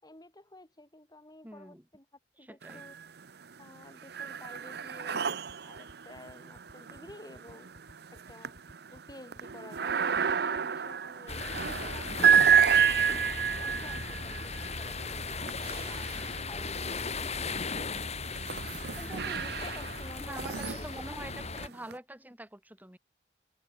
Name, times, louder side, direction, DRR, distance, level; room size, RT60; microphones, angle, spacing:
voice 1, 0.0-2.1 2.4-3.0 3.6-7.7 8.1-8.6 8.9-15.3 15.8-16.2 16.5-18.3 19.0-21.0, left 1 dB, 25° left, 4.8 m, -51 dB
voice 2, 1.4-1.8 2.4-2.8 20.2-23.0, right 1 dB, 10° right, 7.1 m, -45 dB
sound 1, 2.6-3.3 3.6-16.8 17.5-21.9, right 7 dB, 65° right, 0.8 m, -30 dB
sound 2, 5.5-10.6, equal, 75° left, 6.3 m, -55 dB
sound 3, 11.3-21.7, left 4 dB, 40° left, 4.3 m, -37 dB
head